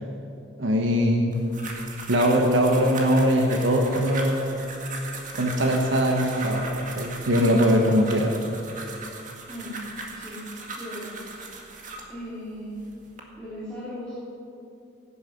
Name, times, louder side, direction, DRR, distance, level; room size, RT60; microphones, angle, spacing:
voice 1, 0.6-1.4 2.1-4.5 5.3-6.7 6.9-8.4, equal, 75° right, 2 dB, 1.3 m, -21 dB
sound 1, 1.3-12.1 12.7-13.2, right 3 dB, 45° right, 1.9 m, -38 dB
voice 2, 10.1-10.4 10.7-11.1 12.1-12.7 13.4-14.1, left 1 dB, 5° left, -12 dB, 3.3 m, -37 dB
17.0 x 10.0 x 5.8 m, 2.7 s
head